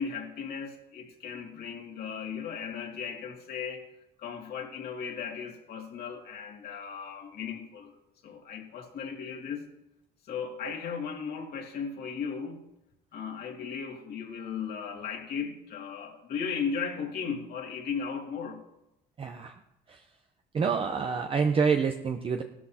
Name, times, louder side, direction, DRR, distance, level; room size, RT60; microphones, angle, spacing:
voice 1, 0.0-3.8 4.2-8.0 8.2-9.6 10.3-12.6 13.1-18.6, left 6 dB, 70° left, 1 dB, 2.4 m, -36 dB
voice 2, 19.2-19.6 19.9-20.1 20.5-22.4, right 5 dB, 35° right, 5 dB, 0.7 m, -27 dB
16.0 x 13.0 x 2.9 m, 0.88 s
cardioid pair, 110°, 17 cm